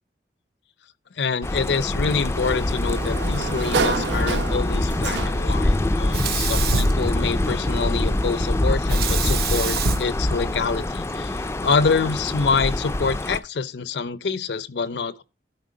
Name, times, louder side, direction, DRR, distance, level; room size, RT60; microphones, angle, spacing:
voice 1, 1.2-15.2, left 5 dB, 75° left, 0.6 m, -26 dB
sound 1, 1.4-13.4, left 1 dB, 15° left, 0.4 m, -24 dB
Sliding door, 1.7-5.7, right 4 dB, 85° right, 0.7 m, -29 dB
Sink (filling or washing), 6.1-7.7 8.9-11.1, right 4 dB, 60° right, 1.0 m, -27 dB
12.0 x 4.3 x 5.2 m
head